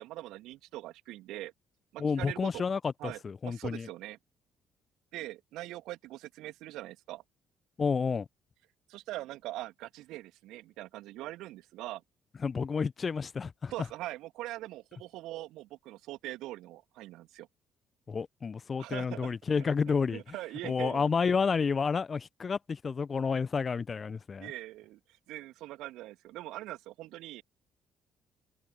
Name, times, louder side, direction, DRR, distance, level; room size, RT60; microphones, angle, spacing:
voice 1, 0.0-1.5 1.9-2.6 3.0-4.2 5.1-7.2 8.9-12.0 13.7-17.5 18.8-19.3 19.6-19.7 20.1-21.1 24.4-25.0 25.3-27.4, right 16 dB, 65° right, 2.8 m, -42 dB
voice 2, 2.0-3.9 7.8-8.3 12.4-13.7 18.1-20.2 20.6-24.5, left 5 dB, 35° left, 1.2 m, -30 dB
open air
figure-of-eight pair, 45°, 0 cm